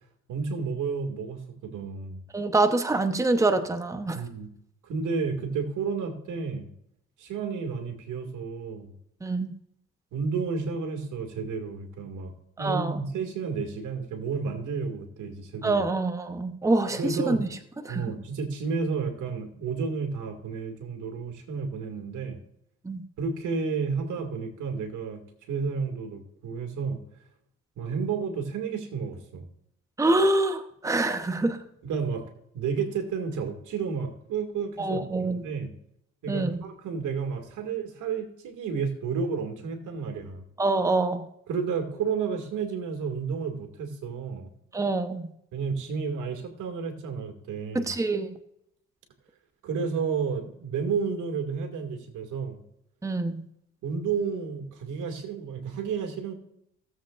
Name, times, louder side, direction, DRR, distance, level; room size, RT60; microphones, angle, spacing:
voice 1, 0.3-2.2 4.1-4.5 4.8-6.7 7.2-8.9 10.1-12.3 12.6-15.8 17.0-17.5 17.9-22.4 23.2-25.2 25.5-27.0 27.8-29.5 31.8-35.7 36.2-40.4 41.5-44.5 45.5-47.9 49.6-52.6 53.8-56.3, right 5 dB, 80° right, 5 dB, 2.1 m, -31 dB
voice 2, 2.3-4.2 9.2-9.5 12.6-13.0 15.6-17.4 17.8-18.0 22.8-23.0 30.0-31.6 34.8-35.4 36.3-36.6 40.6-41.2 44.7-45.3 47.7-48.3 53.0-53.4, right 2 dB, 10° right, 8 dB, 0.9 m, -25 dB
17.0 x 7.6 x 2.5 m, 0.77 s
cardioid pair, 90°, 30 cm